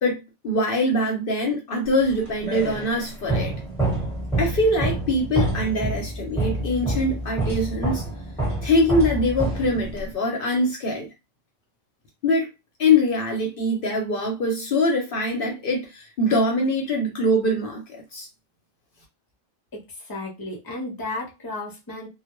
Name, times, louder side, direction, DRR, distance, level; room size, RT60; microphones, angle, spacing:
voice 1, 0.0-3.5 4.4-8.0 8.6-11.1 12.2-12.5 12.8-17.8 18.1-18.3, left 1 dB, 60° left, 0.8 m, -23 dB
sound 1, 2.0-10.1, right 2 dB, ahead, 1.2 m, -27 dB
voice 2, 19.7-22.1, left 2 dB, 25° left, 0.8 m, -34 dB
2.1 x 2.1 x 2.9 m
omnidirectional pair, 1.1 m